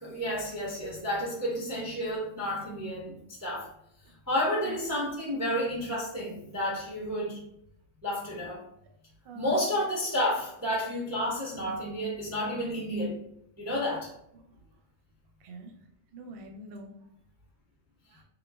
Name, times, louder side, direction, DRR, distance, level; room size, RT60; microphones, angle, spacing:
voice 1, 0.0-3.7 4.3-7.4 8.0-8.6 9.3-13.2 13.6-14.1, equal, 15° right, -5 dB, 0.7 m, -31 dB
voice 2, 9.2-9.6 14.3-14.6 15.4-15.7 16.1-16.9 18.1-18.2, right 2 dB, 65° right, 3 dB, 0.5 m, -45 dB
3.9 x 2.3 x 3.3 m, 0.75 s
omnidirectional pair, 1.7 m